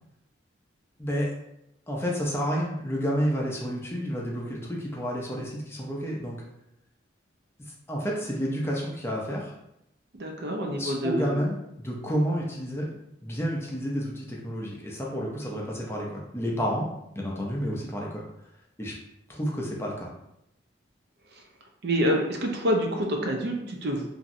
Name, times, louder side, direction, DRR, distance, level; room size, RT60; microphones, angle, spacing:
voice 1, 1.0-1.3 1.9-6.4 7.9-9.5 10.8-12.9 13.2-16.9 17.2-18.2 18.8-18.9 19.3-20.1, equal, 15° left, -3 dB, 0.4 m, -30 dB
voice 2, 10.1-11.4 21.8-24.1, equal, 55° right, 2 dB, 0.5 m, -27 dB
3.0 x 2.6 x 2.5 m, 0.84 s
head